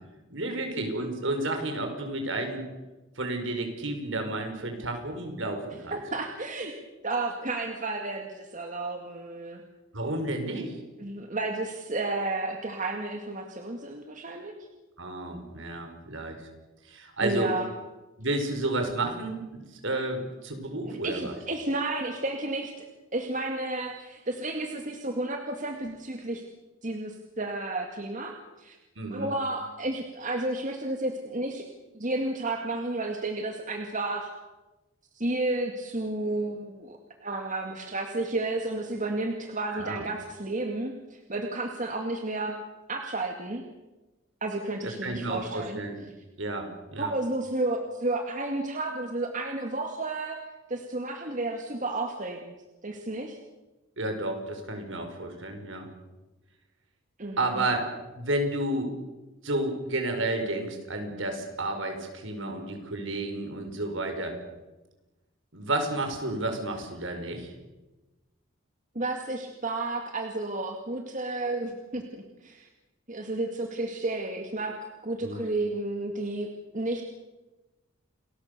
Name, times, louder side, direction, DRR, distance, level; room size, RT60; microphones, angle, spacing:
voice 1, 0.3-2.7 3.2-6.0 9.9-10.8 15.0-16.4 16.8-17.5 18.2-21.3 29.0-29.3 39.7-40.0 44.8-46.0 46.4-47.1 54.0-55.9 57.4-57.9 58.1-58.9 59.4-64.4 65.5-67.5 75.2-75.4, right 2 dB, 65° right, 5 dB, 5.3 m, -31 dB
voice 2, 5.9-6.7 7.0-9.6 11.0-14.6 17.2-17.7 20.9-22.9 23.1-26.4 26.8-28.8 29.1-31.6 31.9-34.3 35.2-42.6 42.9-43.6 44.4-45.8 47.0-50.4 50.7-52.5 52.8-53.4 57.2-57.7 69.0-72.7 73.1-74.7 75.0-77.0, right 2 dB, 40° right, 3 dB, 2.1 m, -32 dB
29.0 x 21.0 x 6.8 m, 1.1 s
head